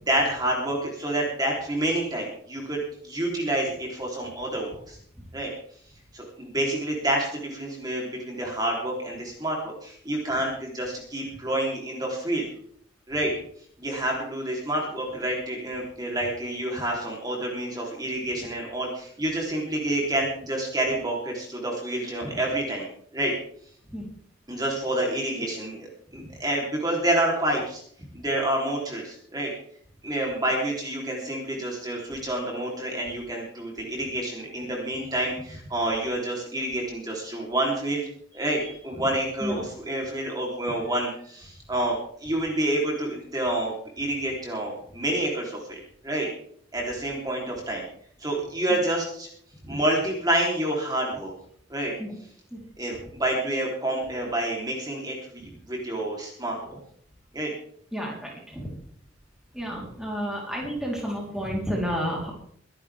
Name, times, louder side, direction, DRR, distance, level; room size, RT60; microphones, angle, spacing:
voice 1, 0.0-5.0 5.3-5.5 6.1-12.5 13.1-13.3 13.8-22.9 23.1-23.3 24.5-27.8 28.1-29.5 30.0-38.0 38.3-45.8 46.0-46.3 46.7-47.8 48.2-49.3 49.6-51.3 51.7-51.9 52.8-56.8 57.3-57.5, right 1 dB, 20° right, -2 dB, 3.5 m, -28 dB
voice 2, 57.9-58.7 59.5-62.3, equal, 5° right, -3 dB, 3.7 m, -31 dB
23.5 x 11.0 x 3.5 m, 0.62 s
head